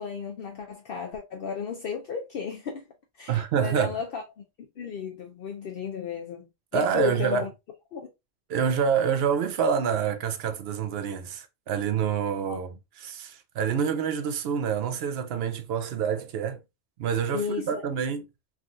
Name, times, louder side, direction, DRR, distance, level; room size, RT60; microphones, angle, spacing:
voice 1, 0.0-2.9 3.2-4.2 4.8-6.5 6.7-7.5 7.9-8.1 12.5-12.6 17.3-17.9, left 6 dB, 60° left, 0.7 m, -34 dB
voice 2, 3.3-4.0 6.7-7.5 8.5-16.6 17.0-18.2, right 7 dB, 70° right, 0.8 m, -27 dB
3.5 x 2.3 x 2.5 m
omnidirectional pair, 1.1 m